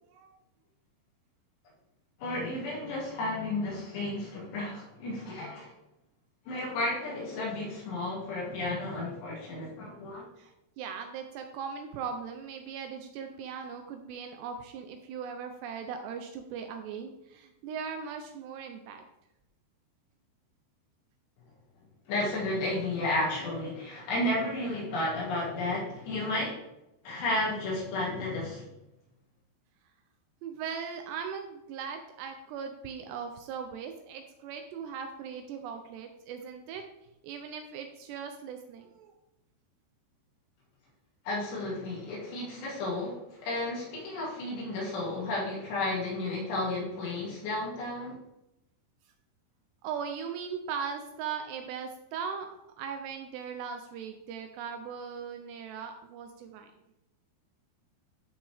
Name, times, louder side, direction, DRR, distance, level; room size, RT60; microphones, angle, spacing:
voice 1, 2.2-5.7 6.5-10.2 22.1-26.6 27.0-28.7 41.2-48.2, left 2 dB, 65° left, -5 dB, 4.4 m, -32 dB
voice 2, 10.4-19.0 30.4-36.8 37.2-39.1 49.8-56.7, right 6 dB, 80° right, 5 dB, 2.5 m, -39 dB
11.5 x 5.4 x 3.5 m, 0.89 s
omnidirectional pair, 5.4 m